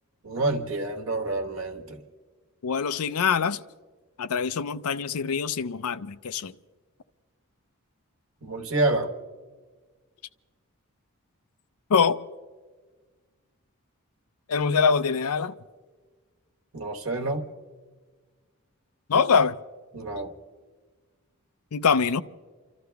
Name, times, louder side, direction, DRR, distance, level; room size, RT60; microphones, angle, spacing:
voice 1, 0.2-2.0 8.4-9.1 16.7-17.5 19.9-20.3, right 2 dB, 65° right, 1.3 m, -28 dB
voice 2, 2.6-3.6 4.2-6.5 11.9-12.2 14.5-15.5 19.1-19.6 21.7-22.2, left 6 dB, 80° left, 0.5 m, -24 dB
29.5 x 13.0 x 3.5 m
head